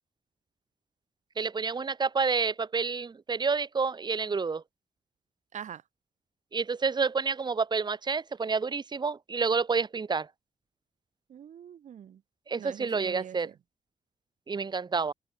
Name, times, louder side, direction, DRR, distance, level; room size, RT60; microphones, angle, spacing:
voice 1, 1.4-4.6 6.5-10.3 12.5-13.5 14.5-15.1, right 5 dB, 35° right, 3.2 m, -29 dB
voice 2, 11.3-12.2 12.6-13.4, right 9 dB, 65° right, 3.3 m, -43 dB
open air
cardioid pair, 125°, 13 cm